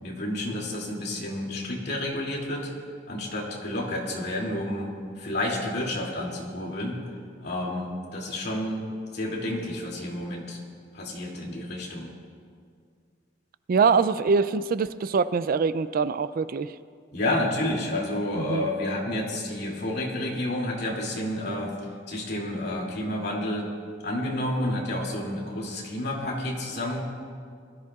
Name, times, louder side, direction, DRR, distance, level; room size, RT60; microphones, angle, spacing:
voice 1, 0.0-2.7 3.1-4.9 5.2-7.0 7.4-8.8 9.1-10.6 10.9-12.1 17.1-21.7 22.1-23.7 24.0-27.0, left 1 dB, 60° left, -2 dB, 2.6 m, -30 dB
voice 2, 13.7-16.7 18.5-18.7, right 5 dB, 50° right, 14 dB, 0.3 m, -23 dB
21.5 x 13.5 x 2.4 m, 2.2 s
head